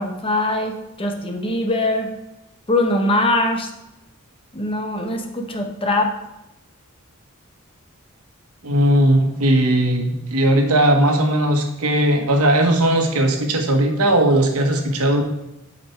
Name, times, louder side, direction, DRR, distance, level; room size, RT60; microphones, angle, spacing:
voice 1, 0.0-2.1 2.7-3.7 4.5-6.1, left 1 dB, 25° left, 4 dB, 0.9 m, -22 dB
voice 2, 8.6-15.2, right 1 dB, 85° right, 4 dB, 1.3 m, -18 dB
8.5 x 5.2 x 4.5 m, 0.92 s
head